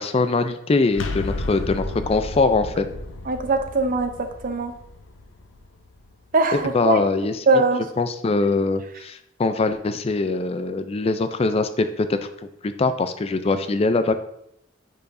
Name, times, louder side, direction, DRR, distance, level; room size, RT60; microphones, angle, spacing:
voice 1, 0.0-2.9 6.5-7.6 8.0-12.2 12.6-14.1, left 3 dB, 30° left, 10 dB, 0.4 m, -22 dB
sound 1, 0.9-6.6, left 2 dB, 75° left, 0.7 m, -33 dB
voice 2, 3.3-4.1 4.4-4.7 6.3-7.0 7.5-7.8, right 3 dB, 45° right, 7 dB, 0.6 m, -20 dB
10.0 x 4.7 x 2.6 m, 0.76 s
head